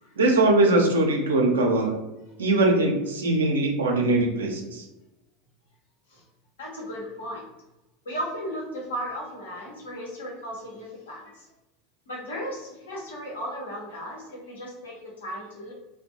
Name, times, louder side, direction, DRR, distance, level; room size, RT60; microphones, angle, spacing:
voice 1, 0.2-2.0 2.4-4.8, right 2 dB, 80° right, 1 dB, 0.5 m, -21 dB
voice 2, 6.6-7.5 8.0-11.5 12.1-15.7, equal, 75° left, -3 dB, 0.9 m, -36 dB
2.5 x 2.2 x 2.6 m, 0.98 s
figure-of-eight pair, 80°, 0 cm